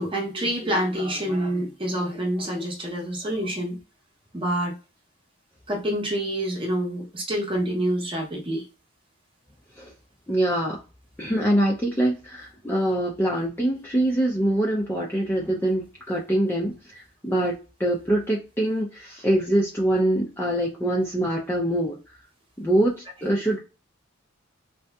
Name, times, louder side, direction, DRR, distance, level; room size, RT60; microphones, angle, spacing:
voice 1, 0.0-3.8 4.3-4.7 5.7-8.6 23.2-23.3, right 1 dB, 25° right, 0 dB, 0.7 m, -27 dB
voice 2, 10.3-10.8 11.2-16.7 17.2-22.0 22.6-23.6, right 1 dB, 10° left, -2 dB, 0.4 m, -24 dB
2.6 x 2.4 x 2.2 m, 0.32 s
head